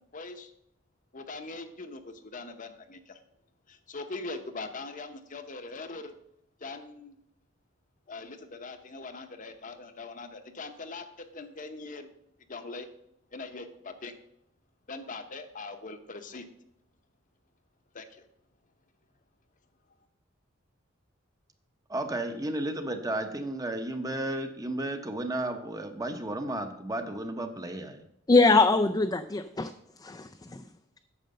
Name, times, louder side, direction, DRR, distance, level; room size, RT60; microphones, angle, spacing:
voice 1, 0.1-0.5 1.1-3.2 3.7-6.1 6.6-7.2 8.1-12.1 12.5-12.9 13.3-14.2 14.9-16.4 17.9-18.3, left 3 dB, 40° left, 8 dB, 0.9 m, -41 dB
voice 2, 21.9-28.0, right 1 dB, 20° right, 7 dB, 0.9 m, -33 dB
voice 3, 28.3-29.7 30.0-30.6, left 3 dB, 20° left, 5 dB, 0.4 m, -23 dB
9.4 x 6.5 x 6.6 m, 0.75 s
head